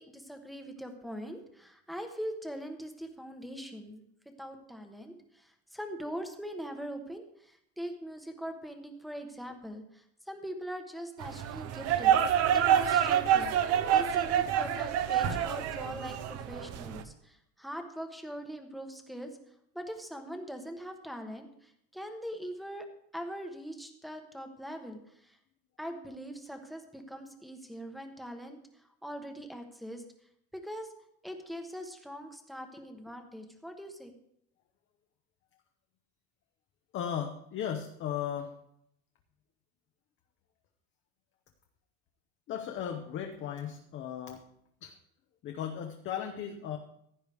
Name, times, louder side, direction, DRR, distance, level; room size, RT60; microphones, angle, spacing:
voice 1, 0.0-4.0 4.4-19.3 19.7-22.9 23.1-25.4 25.8-30.0 30.5-30.9 31.2-34.1, equal, ahead, 5 dB, 1.1 m, -42 dB
sound 1, 11.2-17.0, right 9 dB, 45° right, 0.9 m, -27 dB
voice 2, 36.9-38.5 42.5-44.4 44.8-44.9 45.4-46.8, left 9 dB, 35° left, 4 dB, 0.9 m, -36 dB
15.5 x 10.0 x 3.5 m, 0.75 s
cardioid pair, 160°, 34 cm